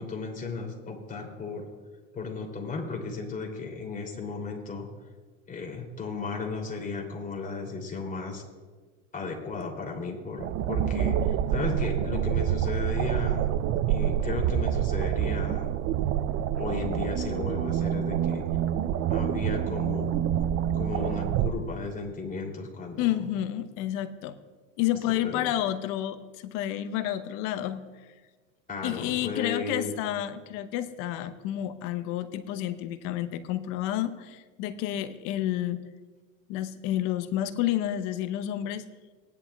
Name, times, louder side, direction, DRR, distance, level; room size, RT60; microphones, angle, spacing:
voice 1, 0.0-1.7 2.1-4.9 5.5-8.4 9.1-13.5 13.9-15.8 16.6-18.4 19.1-20.1 20.7-23.3 25.2-25.5 28.7-29.9, left 4 dB, 20° left, 1 dB, 3.0 m, -35 dB
sound 1, 10.4-21.5, right 10 dB, 35° right, 0.5 m, -27 dB
voice 2, 23.0-24.4 24.8-27.9 28.8-35.8 36.5-38.8, left 12 dB, 55° left, 11 dB, 0.9 m, -30 dB
19.0 x 10.5 x 2.3 m, 1.4 s
hypercardioid pair, 105°, 39 cm